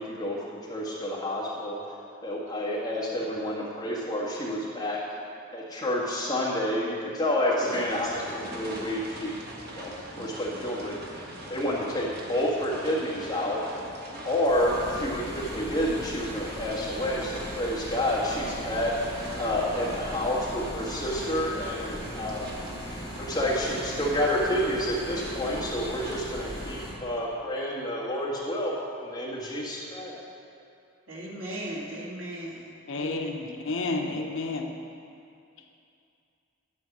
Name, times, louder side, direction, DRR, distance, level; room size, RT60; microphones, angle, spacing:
voice 1, 0.0-1.8 2.2-5.0 5.5-9.4 9.7-11.1 11.5-13.6 14.2-18.9 19.3-22.5 23.2-28.7 29.0-30.1, left 1 dB, 15° left, -6 dB, 1.7 m, -29 dB
sound 1, 7.6-26.2, right 1 dB, 50° right, 1.2 m, -42 dB
sound 2, 14.5-26.9, equal, 15° right, 2.6 m, -39 dB
voice 2, 31.1-32.6 32.9-33.4, right 1 dB, 75° right, -4 dB, 2.1 m, -37 dB
voice 3, 32.9-34.7, left 3 dB, 65° left, 3 dB, 0.8 m, -30 dB
11.0 x 4.7 x 7.3 m, 2.5 s
head